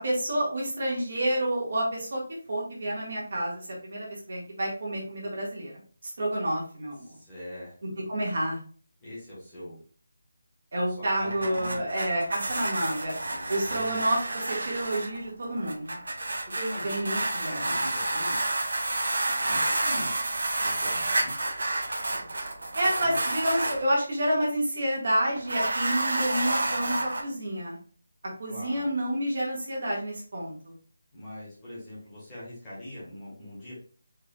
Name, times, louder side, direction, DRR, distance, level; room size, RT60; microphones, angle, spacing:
voice 1, 0.0-2.2 2.5-5.7 6.0-7.1 8.1-8.6 10.7-13.1 13.5-16.0 16.8-17.7 22.7-27.8 28.4-30.7, right 1 dB, 45° right, -3 dB, 1.9 m, -29 dB
voice 2, 7.0-8.0 9.0-9.8 10.9-11.8 13.2-14.0 16.5-18.4 19.4-20.1 20.6-21.3 23.0-23.2 28.5-28.9 31.1-33.7, equal, 10° left, -11 dB, 1.7 m, -42 dB
sound 1, 11.1-23.8 25.4-27.2, right 2 dB, 80° right, 0.9 m, -30 dB
4.8 x 4.6 x 2.4 m, 0.43 s
figure-of-eight pair, 175°, 0 cm